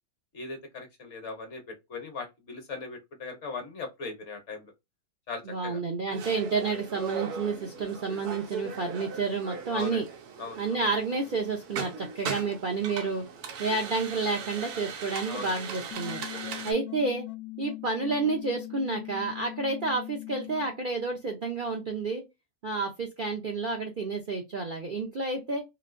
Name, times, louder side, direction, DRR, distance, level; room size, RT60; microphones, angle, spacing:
voice 1, 0.3-4.7 5.3-5.8 6.1-6.3 9.7-10.0 10.4-10.8 15.3-15.6 16.2-16.6, left 4 dB, 55° left, 1.1 m, -39 dB
voice 2, 5.5-10.1 10.6-13.2 13.6-16.2 16.6-17.3 17.6-22.2 22.6-25.6, right 4 dB, 55° right, 0.6 m, -30 dB
sound 1, 6.1-16.7, right 6 dB, 90° right, 1.2 m, -39 dB
sound 2, 15.9-20.9, left 21 dB, 80° left, 1.0 m, -41 dB
3.1 x 2.6 x 2.4 m
omnidirectional pair, 1.6 m